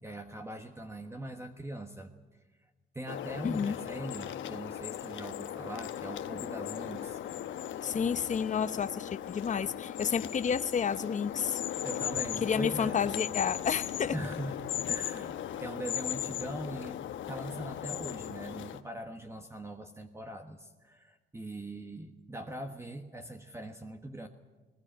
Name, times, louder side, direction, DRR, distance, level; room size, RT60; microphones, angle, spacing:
voice 1, 0.0-2.1 2.9-7.2 11.8-13.0 14.1-14.6 14.9-17.0 17.3-24.3, right 1 dB, 15° right, 5 dB, 1.4 m, -41 dB
sound 1, 3.1-18.8, left 11 dB, 75° left, 1.1 m, -38 dB
voice 2, 3.4-3.8 7.8-11.6 12.4-14.1, left 7 dB, 40° left, 12 dB, 0.8 m, -30 dB
20.5 x 19.5 x 9.0 m, 1.2 s
cardioid pair, 90°, 20 cm